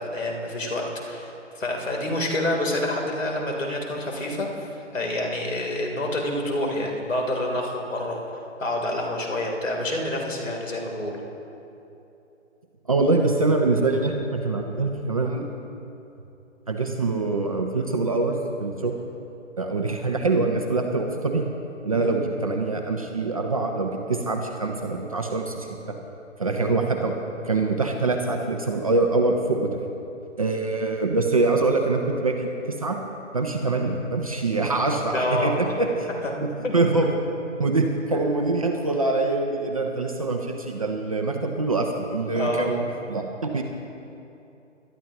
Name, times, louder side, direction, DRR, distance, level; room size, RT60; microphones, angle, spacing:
voice 1, 0.0-8.2 8.6-11.2 21.9-22.1 26.5-26.7 35.1-35.7 36.6-36.8 42.3-42.8, left 1 dB, 90° left, 0 dB, 3.3 m, -28 dB
voice 2, 12.9-15.4 16.7-19.0 19.6-21.5 21.8-25.9 26.4-27.1 27.4-29.8 30.4-33.0 33.3-36.1 36.4-37.1 37.6-43.2 43.5-43.6, right 3 dB, 30° right, 2 dB, 0.6 m, -24 dB
21.5 x 12.5 x 2.9 m, 2.9 s
hypercardioid pair, 165°, 38 cm